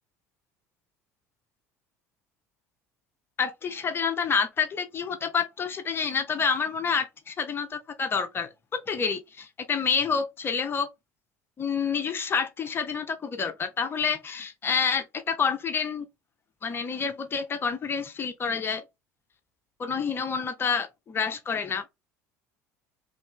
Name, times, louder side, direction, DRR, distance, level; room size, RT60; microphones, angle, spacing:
voice 1, 3.4-8.5 8.9-10.9 11.6-16.1 16.6-18.8 19.8-21.8, left 6 dB, 25° left, 0.6 m, -28 dB
3.2 x 2.5 x 3.6 m
figure-of-eight pair, 65°, 8 cm